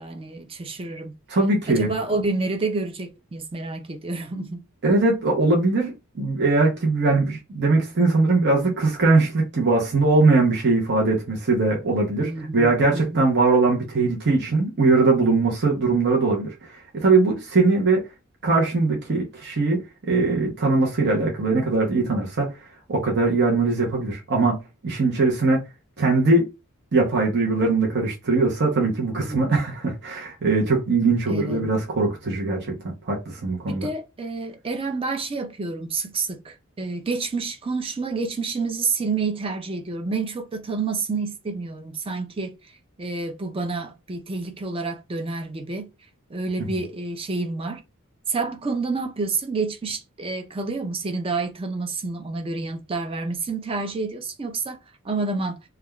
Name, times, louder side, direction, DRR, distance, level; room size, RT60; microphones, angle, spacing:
voice 1, 0.0-1.1 1.7-4.6 12.2-13.3 29.2-29.6 31.3-31.6 33.7-42.6 43.0-45.9 46.3-47.8 48.3-54.8 55.0-55.6, right 3 dB, 25° right, 0.5 m, -29 dB
voice 2, 1.3-1.9 4.8-18.0 18.4-19.8 20.1-22.5 22.9-25.6 26.0-26.5 26.9-33.9, right 3 dB, 55° right, 0.8 m, -21 dB
3.3 x 2.3 x 2.2 m
head